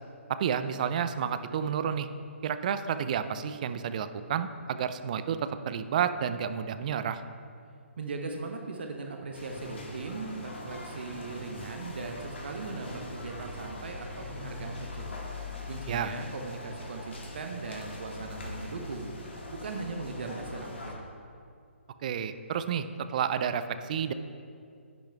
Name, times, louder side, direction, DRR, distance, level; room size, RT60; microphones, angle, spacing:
voice 1, 0.3-2.1 2.4-5.4 5.7-7.2 15.9-16.1 22.0-22.9 23.1-24.1, right 8 dB, 35° right, 11 dB, 0.4 m, -30 dB
voice 2, 8.0-15.1 15.6-19.1 19.5-20.9, right 3 dB, 55° right, 3 dB, 0.9 m, -39 dB
sound 1, 9.3-21.0, left 2 dB, 60° left, 1.8 m, -42 dB
10.5 x 10.5 x 2.4 m, 2.3 s
figure-of-eight pair, 135°, 7 cm